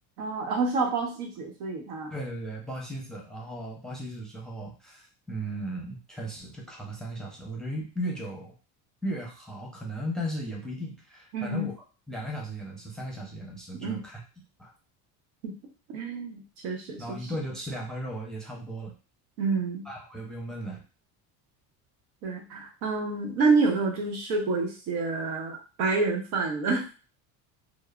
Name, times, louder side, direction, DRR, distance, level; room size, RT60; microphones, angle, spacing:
voice 1, 0.2-2.1 11.3-11.7 13.8-14.0 15.4-15.5 15.9-17.3 19.4-19.9 22.2-26.8, right 3 dB, 90° right, 1 dB, 0.9 m, -28 dB
voice 2, 2.1-8.5 9.0-11.7 12.1-14.2 14.6-14.7 17.0-18.9 19.8-20.8, equal, ahead, -1 dB, 0.6 m, -36 dB
3.0 x 2.0 x 2.3 m, 0.33 s
cardioid pair, 115°, 41 cm